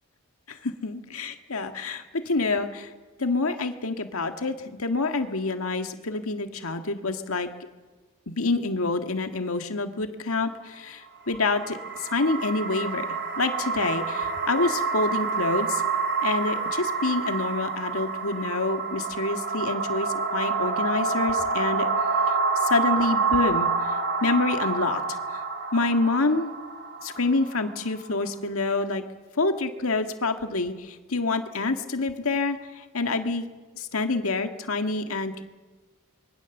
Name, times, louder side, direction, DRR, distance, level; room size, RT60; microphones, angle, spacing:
voice 1, 0.5-2.9 3.2-7.5 8.3-13.1 13.4-15.8 16.2-21.9 22.3-22.4 22.6-25.4 25.7-26.5 27.0-29.0 29.4-33.5 33.8-35.4, left 3 dB, 85° left, 6 dB, 1.8 m, -27 dB
sound 1, 11.2-28.3, right 4 dB, 50° right, 3.0 m, -28 dB
26.0 x 23.0 x 7.2 m, 1.3 s
head